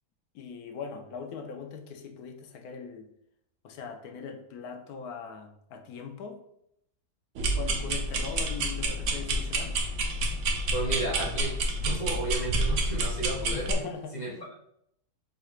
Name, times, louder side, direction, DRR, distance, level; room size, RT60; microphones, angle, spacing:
voice 1, 0.3-3.1 3.6-6.4 7.5-9.8 13.5-14.5, left 6 dB, 80° left, 5 dB, 1.1 m, -40 dB
sound 1, 7.4-13.7, right 2 dB, 65° right, 0.8 m, -29 dB
voice 2, 10.7-11.5 11.8-13.7 14.1-14.3, right 1 dB, 35° left, -2 dB, 0.8 m, -32 dB
4.3 x 3.8 x 2.4 m, 0.76 s
omnidirectional pair, 1.6 m